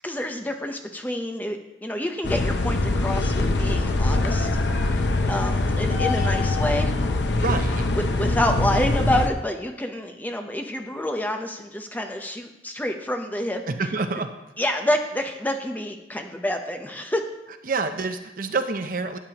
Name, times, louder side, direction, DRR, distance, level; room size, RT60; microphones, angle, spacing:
voice 1, 0.0-4.5 4.8-6.9 8.0-13.6 14.6-17.2, left 1 dB, 10° left, 4 dB, 0.7 m, -28 dB
sound 1, 2.2-9.3, left 2 dB, 80° left, 0.7 m, -23 dB
voice 2, 7.4-7.8 13.7-14.3 17.7-19.2, right 3 dB, 50° right, 8 dB, 0.6 m, -27 dB
12.5 x 8.9 x 2.9 m, 0.93 s
head